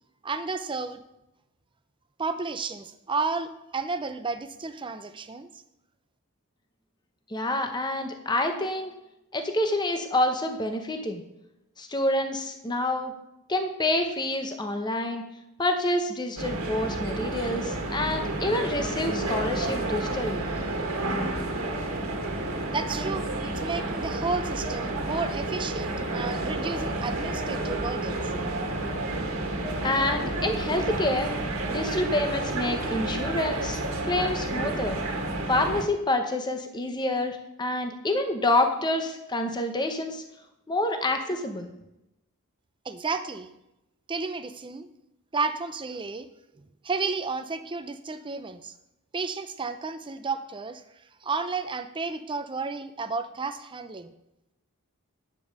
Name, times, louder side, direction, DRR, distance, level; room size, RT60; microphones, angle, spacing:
voice 1, 0.2-1.0 2.2-5.5 22.7-28.2 42.8-43.5 44.1-44.9 45.3-46.3 46.6-48.7 49.1-50.8 51.2-54.1, right 4 dB, 20° right, 10 dB, 0.5 m, -32 dB
voice 2, 7.3-8.9 9.3-11.2 11.8-13.1 13.5-15.2 15.6-20.5 29.8-31.3 31.7-33.8 34.1-35.0 35.5-40.2 40.7-41.7, left 1 dB, 20° left, 5 dB, 0.8 m, -27 dB
sound 1, 16.4-35.8, right 2 dB, 65° right, 1.7 m, -30 dB
9.2 x 5.2 x 6.4 m, 0.87 s
head